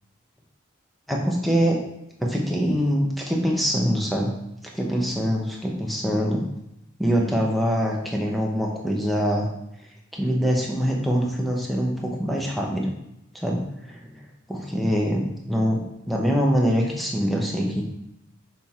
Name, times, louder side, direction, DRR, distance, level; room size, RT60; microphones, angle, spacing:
voice 1, 1.1-1.8 2.2-4.4 4.7-6.5 7.0-9.5 10.1-12.9 13.3-14.2 14.5-17.8, equal, ahead, -1 dB, 0.9 m, -24 dB
6.1 x 4.4 x 3.6 m, 0.84 s
head